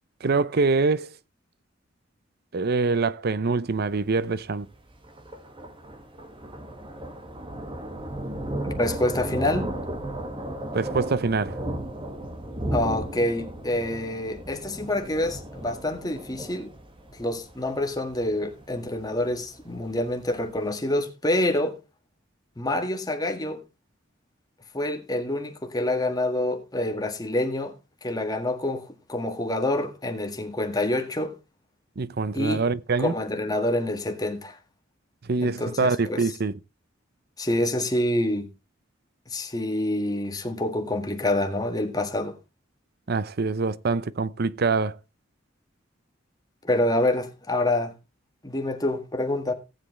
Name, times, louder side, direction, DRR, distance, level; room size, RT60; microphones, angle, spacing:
voice 1, 0.2-1.1 2.5-4.7 10.7-11.6 32.0-33.1 35.3-36.5 43.1-45.0, right 4 dB, 55° right, 0.6 m, -24 dB
Thunder, 3.7-20.6, right 1 dB, 25° right, 1.7 m, -36 dB
voice 2, 8.6-9.8 12.7-16.7 17.1-21.8 22.6-23.6 24.7-27.7 28.0-31.3 32.3-32.6 33.0-34.6 35.4-36.3 37.4-38.5 39.3-42.4 46.6-47.9 48.4-49.5, left 1 dB, 20° left, 1.7 m, -27 dB
17.5 x 7.7 x 3.2 m
head